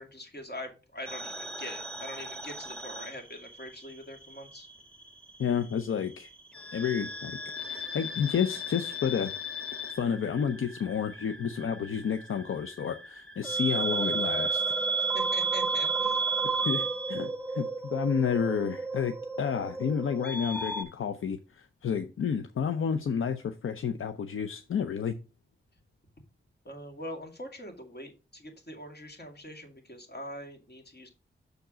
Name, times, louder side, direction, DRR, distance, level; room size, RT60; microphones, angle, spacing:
voice 1, 0.0-4.7 15.1-16.2 26.7-31.1, equal, 50° left, 2.2 m, -43 dB
sound 1, 1.1-3.9 4.2-5.4 6.5-20.8, right 3 dB, 5° left, 1.1 m, -33 dB
voice 2, 5.4-6.3 6.7-7.4 7.7-9.3 9.9-14.6 16.6-25.2, left 7 dB, 80° left, 0.6 m, -30 dB
6.6 x 4.6 x 4.9 m
cardioid pair, 65°, 21 cm